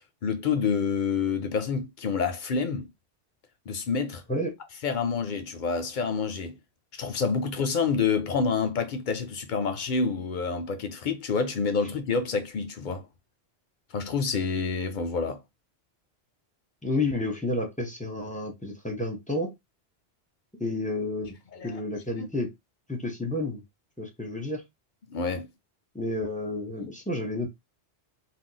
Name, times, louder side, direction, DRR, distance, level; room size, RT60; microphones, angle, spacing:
voice 1, 0.0-2.9 3.7-4.2 4.8-6.6 7.0-13.1 13.9-15.4 21.5-21.8 25.1-25.5, left 5 dB, 55° left, 0.6 m, -28 dB
voice 2, 16.8-19.5 20.6-21.4 21.6-22.5 22.9-23.6 24.0-24.6 25.9-27.5, left 2 dB, 10° left, 0.5 m, -30 dB
2.4 x 2.2 x 3.8 m
omnidirectional pair, 1.2 m